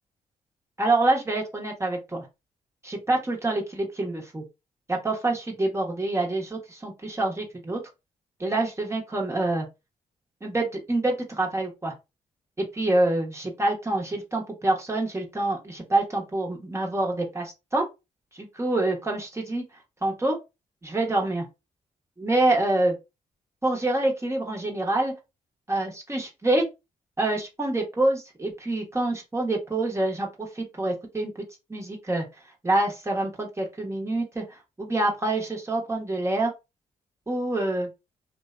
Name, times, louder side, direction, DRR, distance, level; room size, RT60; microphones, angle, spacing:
voice 1, 0.8-2.3 2.8-4.4 4.9-7.8 8.4-9.6 10.4-11.9 12.6-17.8 18.3-19.6 20.0-20.4 20.8-21.4 22.2-22.9 23.6-25.1 25.7-26.6 27.2-31.4 31.7-32.2 32.6-36.5 37.3-37.9, right 2 dB, 15° right, 0 dB, 0.9 m, -26 dB
2.5 x 2.1 x 2.4 m, 0.25 s
supercardioid pair, 50°, 16 cm